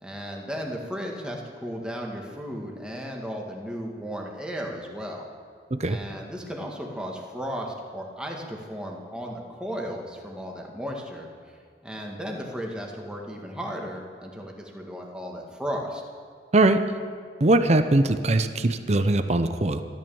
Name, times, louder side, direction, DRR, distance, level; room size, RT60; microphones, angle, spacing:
voice 1, 0.0-5.3 5.8-11.3 11.8-16.0, equal, 5° right, 0 dB, 1.8 m, -35 dB
voice 2, 17.4-19.8, right 2 dB, 40° right, 9 dB, 0.7 m, -21 dB
13.5 x 12.5 x 7.1 m, 2.2 s
head